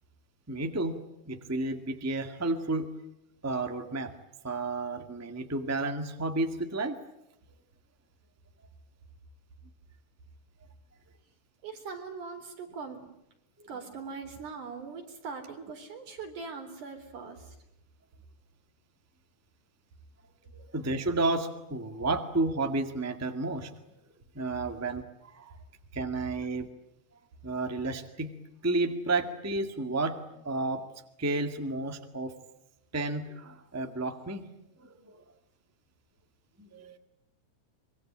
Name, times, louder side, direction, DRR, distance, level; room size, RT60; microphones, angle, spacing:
voice 1, 0.5-1.0 1.3-2.9 3.4-4.1 4.4-7.0 20.5-23.7 24.3-25.5 25.9-26.7 27.4-28.3 28.6-30.2 30.4-30.8 31.2-32.3 32.9-34.5 34.8-35.2 36.6-37.0, right 2 dB, 5° right, 6 dB, 1.2 m, -31 dB
voice 2, 11.6-13.1 13.7-17.6, right 5 dB, 75° right, 4 dB, 5.4 m, -41 dB
24.5 x 23.5 x 8.9 m, 0.86 s
omnidirectional pair, 3.6 m